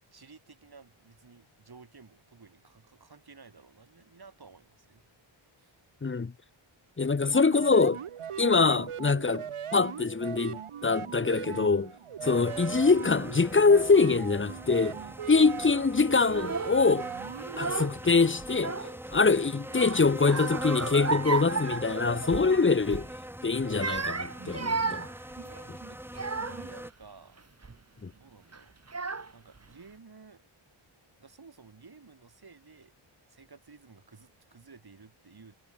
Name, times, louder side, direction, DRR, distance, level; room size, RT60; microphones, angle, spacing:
voice 1, 0.1-5.1 5.6-5.8 25.8-27.4 28.1-28.7 29.3-30.4 31.2-32.9 33.3-35.5, right 4 dB, 45° right, 5.7 m, -54 dB
voice 2, 6.0-6.3 7.0-8.0 8.4-11.9 12.2-15.0 15.3-17.1 17.6-18.8 19.1-23.1 23.4-25.0 25.7-25.8 28.0-28.1, left 4 dB, 25° left, 0.8 m, -24 dB
sound 1, 7.3-17.9, right 8 dB, 80° right, 1.5 m, -39 dB
sound 2, 12.2-26.9, right 1 dB, 5° right, 2.2 m, -42 dB
Child speech kid speaking / Crying sobbing, 16.2-16.8 17.4-18.1 18.4-19.2 19.7-22.5 22.9-23.1 23.6-26.8 27.4-27.8 28.5-28.6 28.9-29.6, right 4 dB, 30° right, 2.1 m, -34 dB
wide cardioid pair, 140°, 50 cm